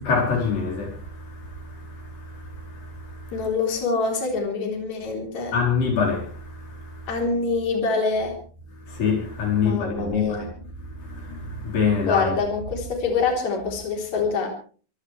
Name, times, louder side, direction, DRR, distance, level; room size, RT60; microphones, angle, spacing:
voice 1, 0.0-3.3 5.5-7.1 8.9-10.5 10.8-12.3, left 5 dB, 85° left, 6.2 m, -26 dB
voice 2, 3.3-5.5 7.1-8.4 9.5-10.5 12.0-14.5, left 4 dB, 55° left, 4.9 m, -25 dB
24.5 x 17.0 x 3.3 m
omnidirectional pair, 3.9 m